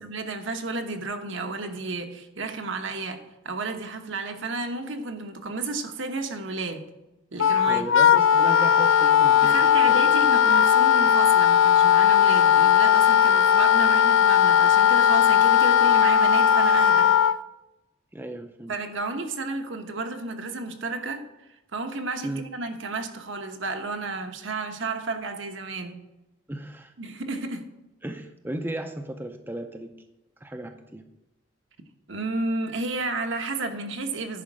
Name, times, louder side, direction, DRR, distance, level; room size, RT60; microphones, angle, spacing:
voice 1, 0.0-6.8 7.3-7.9 9.4-17.1 18.7-26.0 27.0-27.7 32.1-34.4, right 3 dB, 70° right, 5 dB, 1.1 m, -32 dB
Wind instrument woodwind instrument, 7.4-17.4, left 9 dB, 75° left, 0.4 m, -18 dB
voice 2, 7.7-10.0 18.1-18.7 22.2-22.5 26.5-26.9 28.0-30.0 30.4-31.0, right 1 dB, 10° right, 6 dB, 0.5 m, -35 dB
10.5 x 5.1 x 7.5 m, 0.98 s
head